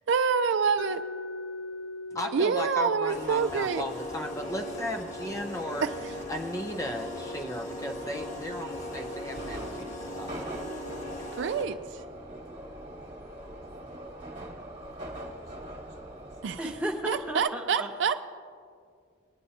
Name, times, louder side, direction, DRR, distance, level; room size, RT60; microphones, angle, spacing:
voice 1, 0.1-1.0 2.3-3.9 5.8-5.9 11.4-11.8 16.4-16.6 17.1-18.2, right 6 dB, 60° right, 10 dB, 0.4 m, -26 dB
Mallet percussion, 0.8-6.6, left 2 dB, 70° left, 0.5 m, -42 dB
voice 2, 2.1-5.9 6.3-10.4, left 1 dB, 15° left, 3 dB, 0.5 m, -36 dB
sound 1, 3.1-11.8, left 1 dB, 35° left, 1.2 m, -39 dB
Subway metro underground, 3.1-17.4, right 1 dB, 35° right, 1.4 m, -44 dB
voice 3, 16.6-17.9, right 1 dB, 5° right, -1 dB, 1.0 m, -33 dB
20.5 x 9.8 x 2.8 m, 2.1 s
head